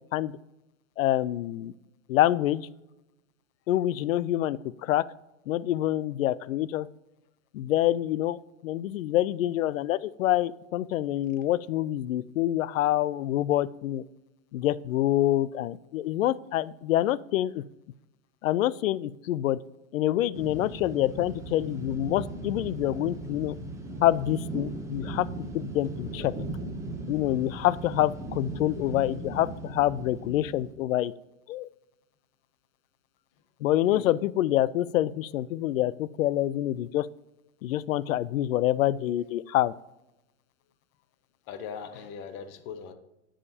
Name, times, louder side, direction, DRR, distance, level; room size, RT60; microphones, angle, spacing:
voice 1, 1.0-1.7 2.1-2.7 3.7-5.0 5.5-6.9 7.5-14.0 14.5-17.6 18.4-19.6 19.9-23.6 24.0-25.3 25.5-26.3 27.1-31.1 31.5-31.7 33.6-37.1 37.6-39.7, left 13 dB, 85° left, 18 dB, 0.6 m, -26 dB
sound 1, 20.3-30.7, right 2 dB, 10° right, 0.7 m, -38 dB
voice 2, 41.5-42.9, left 7 dB, 30° left, 9 dB, 0.7 m, -40 dB
14.5 x 5.0 x 2.8 m, 0.94 s
supercardioid pair, 155°, 39 cm